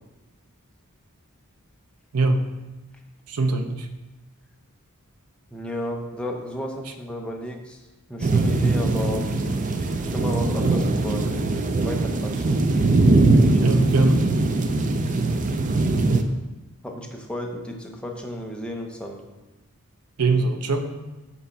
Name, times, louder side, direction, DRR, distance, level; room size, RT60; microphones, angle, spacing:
voice 1, 2.1-2.5 3.3-3.9 13.6-14.3 20.2-20.9, right 3 dB, 85° right, 7 dB, 0.7 m, -22 dB
voice 2, 5.5-7.8 8.1-9.3 10.1-11.2 11.8-12.7 13.3-13.8 16.8-19.2, left 1 dB, 5° left, 1 dB, 0.6 m, -33 dB
sound 1, 8.2-16.2, right 2 dB, 35° right, 0.4 m, -21 dB
5.9 x 4.1 x 5.7 m, 1.1 s
head